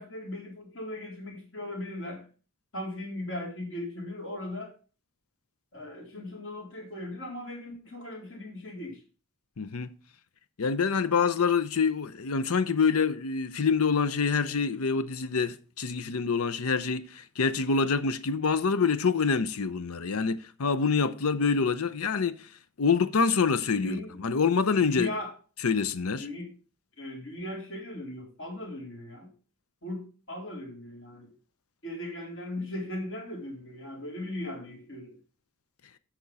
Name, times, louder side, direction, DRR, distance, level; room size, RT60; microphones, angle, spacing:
voice 1, 0.0-2.3 2.7-4.7 5.7-9.0 23.8-24.2 24.8-25.3 26.1-26.5 27.0-29.3 29.8-31.3 31.8-35.2, left 1 dB, 60° left, 3.9 m, -38 dB
voice 2, 9.6-10.0 10.6-22.4 22.8-25.1 25.6-26.3, left 5 dB, 85° left, 0.7 m, -26 dB
8.7 x 6.1 x 5.4 m
head